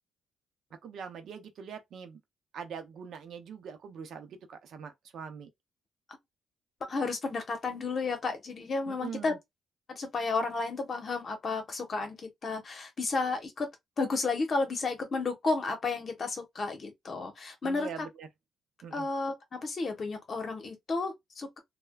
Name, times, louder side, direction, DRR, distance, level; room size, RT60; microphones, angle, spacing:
voice 1, 0.8-2.2 2.5-5.5 8.9-9.4 17.6-18.3 18.8-19.1, right 7 dB, 70° right, 0.6 m, -43 dB
voice 2, 6.9-9.3 9.9-13.7 14.0-18.1 18.9-21.6, left 3 dB, 45° left, 0.9 m, -32 dB
3.2 x 2.1 x 2.2 m
cardioid pair, 90°, 0 cm